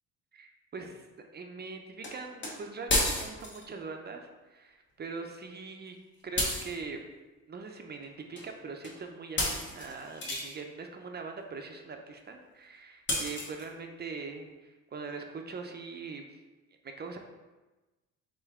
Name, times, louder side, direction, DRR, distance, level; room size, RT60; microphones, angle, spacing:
voice 1, 0.3-1.0 1.3-6.0 6.2-7.0 7.5-16.3 17.0-17.2, right 4 dB, 35° right, 4 dB, 0.4 m, -42 dB
sound 1, 2.0-2.1 2.4-2.5 2.9-3.6 6.4-6.7 8.4-8.5 8.8-9.0 9.4-10.5 13.1-13.6, left 1 dB, 40° left, 1.0 m, -31 dB
3.7 x 3.3 x 3.5 m, 1.2 s
cardioid pair, 90°, 30 cm